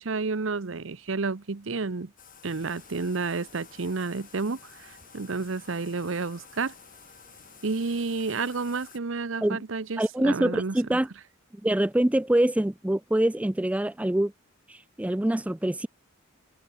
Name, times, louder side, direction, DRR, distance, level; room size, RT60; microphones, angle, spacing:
voice 1, 0.0-2.1 2.4-6.7 7.6-11.0, right 4 dB, 65° right, 0.8 m, -31 dB
Bathtub (filling or washing), 2.2-9.0, left 8 dB, 40° left, 4.7 m, -51 dB
Water, 2.4-8.8, right 4 dB, 40° right, 4.9 m, -59 dB
voice 2, 10.0-11.1 11.6-14.3 14.7-15.9, right 1 dB, 5° right, 0.3 m, -25 dB
head